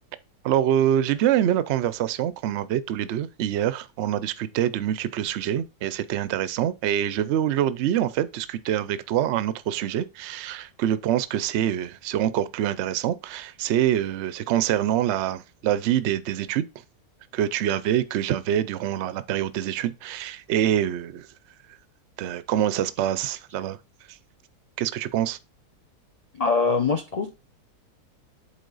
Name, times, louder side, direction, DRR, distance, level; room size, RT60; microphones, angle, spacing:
voice 1, 0.4-16.6 17.3-21.3 22.2-23.8 24.8-25.4, right 11 dB, 65° right, 0.7 m, -25 dB
voice 2, 26.3-27.3, left 4 dB, 55° left, 0.4 m, -23 dB
8.3 x 3.8 x 3.9 m
omnidirectional pair, 1.7 m